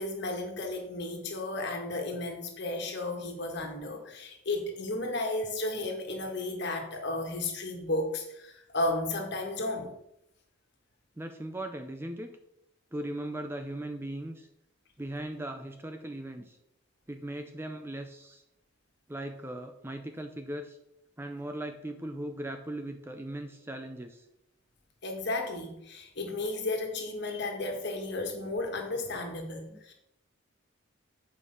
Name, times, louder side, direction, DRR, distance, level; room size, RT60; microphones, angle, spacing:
voice 1, 0.0-9.9 25.0-29.9, left 2 dB, 50° left, 2 dB, 1.7 m, -33 dB
voice 2, 11.2-12.4 12.9-14.5 15.0-16.6 17.1-18.4 19.1-20.8 21.2-24.3 29.7-29.8, right 1 dB, 10° right, 6 dB, 0.5 m, -38 dB
8.7 x 5.3 x 5.4 m, 0.84 s
head